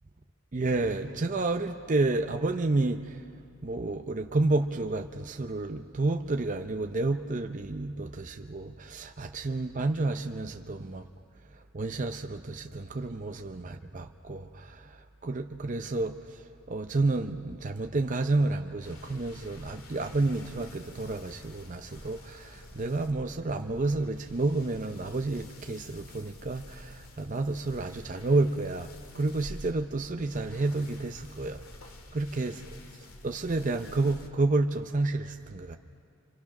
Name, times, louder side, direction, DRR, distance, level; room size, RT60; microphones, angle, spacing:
voice 1, 0.5-3.2 3.6-11.1 11.7-16.2 16.7-31.6 32.1-32.5 33.2-35.8, right 2 dB, 35° right, 5 dB, 0.6 m, -30 dB
sound 1, 18.8-34.3, left 1 dB, 75° left, 2.0 m, -49 dB
26.5 x 26.5 x 6.0 m, 2.4 s
head